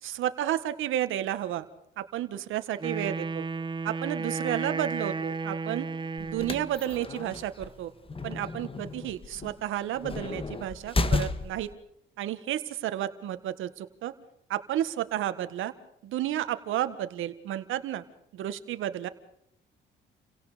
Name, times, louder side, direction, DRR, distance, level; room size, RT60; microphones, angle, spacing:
voice 1, 0.0-1.7 2.0-3.5 3.8-5.9 6.2-7.9 8.2-11.7 12.2-14.1 14.5-15.7 16.0-18.0 18.3-19.1, right 12 dB, 85° right, 11 dB, 1.8 m, -32 dB
Wind instrument woodwind instrument, 2.8-6.8, right 4 dB, 25° right, 1.0 m, -33 dB
sound 1, 6.2-11.7, left 3 dB, 25° left, 2.0 m, -33 dB
30.0 x 17.5 x 5.2 m, 0.74 s
cardioid pair, 90°, 20 cm